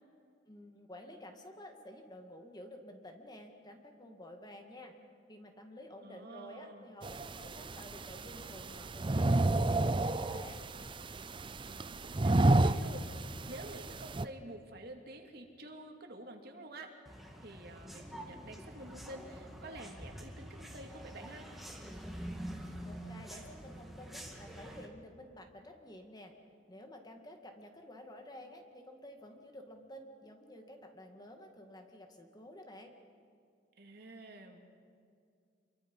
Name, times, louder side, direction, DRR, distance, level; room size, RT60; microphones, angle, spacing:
voice 1, 0.5-4.9 5.3-10.6 22.8-26.3 26.7-32.9, left 1 dB, 20° left, 4 dB, 2.0 m, -51 dB
voice 2, 6.0-7.0 11.6-16.9 17.4-21.5 33.8-34.6, right 1 dB, 60° right, 3 dB, 2.6 m, -49 dB
sound 1, 7.0-14.3, right 2 dB, 25° right, 0.5 m, -31 dB
sound 2, 17.1-24.9, equal, ahead, 2.3 m, -46 dB
28.0 x 23.0 x 5.6 m, 2.2 s
head